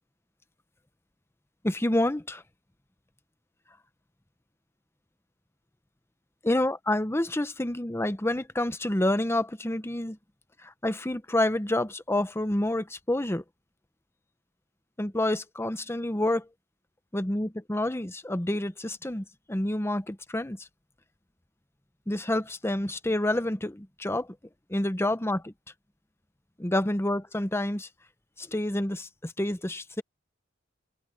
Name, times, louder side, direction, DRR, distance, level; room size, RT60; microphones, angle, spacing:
voice 1, 1.6-2.4 6.4-10.2 10.6-13.4 15.0-16.5 17.1-20.7 22.1-24.3 24.7-25.5 26.6-27.9 28.4-30.0, left 1 dB, 15° left, 0.9 m, -28 dB
head